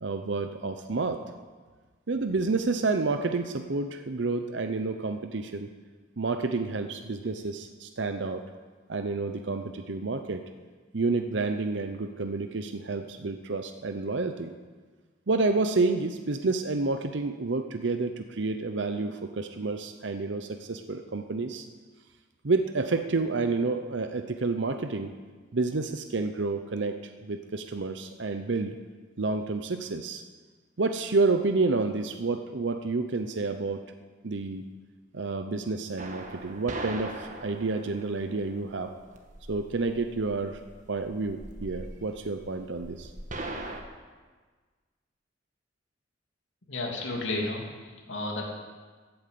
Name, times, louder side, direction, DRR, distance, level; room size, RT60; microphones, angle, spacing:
voice 1, 0.0-1.2 2.1-5.7 6.2-8.4 8.9-10.4 10.9-14.5 15.3-21.7 22.4-25.1 25.5-28.7 29.2-30.2 30.8-33.8 34.2-34.7 35.1-38.9 39.5-40.6 40.9-43.1, right 3 dB, 70° right, 7 dB, 0.7 m, -29 dB
sound 1, 36.0-43.8, right 2 dB, 40° right, 1.4 m, -41 dB
voice 2, 46.7-48.5, left 2 dB, 85° left, -1 dB, 2.9 m, -32 dB
15.0 x 9.0 x 7.7 m, 1.4 s
head